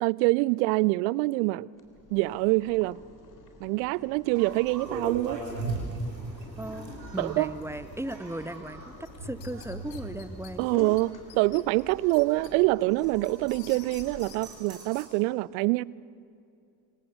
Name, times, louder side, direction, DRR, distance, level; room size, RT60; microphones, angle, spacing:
voice 1, 0.0-1.7 2.1-3.0 3.6-5.4 7.2-7.5 10.6-15.8, right 21 dB, 55° right, 0.6 m, -25 dB
Boiling, 1.7-14.5, left 3 dB, 40° left, 3.6 m, -51 dB
sound 1, 4.3-15.0, right 3 dB, 80° right, 3.3 m, -40 dB
voice 2, 6.6-11.0, right 1 dB, 5° right, 0.9 m, -37 dB
sound 2, 9.0-10.5 11.0-11.1 11.3-12.5 12.9-14.4, left 12 dB, 75° left, 1.5 m, -50 dB
26.0 x 24.0 x 7.0 m
figure-of-eight pair, 50°, 49 cm